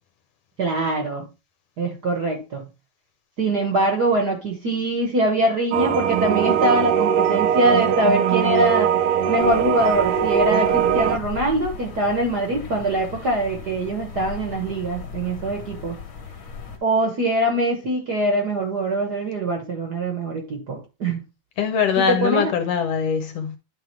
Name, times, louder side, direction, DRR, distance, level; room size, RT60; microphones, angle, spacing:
voice 1, 0.6-1.3 1.8-2.7 3.4-8.9 9.3-16.0 16.8-21.2 22.1-22.5, right 1 dB, 50° right, 1.3 m, -23 dB
sound 1, 5.7-11.2, right 8 dB, 90° right, 1.2 m, -20 dB
sound 2, 9.4-16.8, left 5 dB, 45° left, 1.7 m, -37 dB
voice 2, 21.6-23.6, left 7 dB, 70° left, 1.7 m, -22 dB
10.5 x 3.6 x 4.5 m
omnidirectional pair, 3.3 m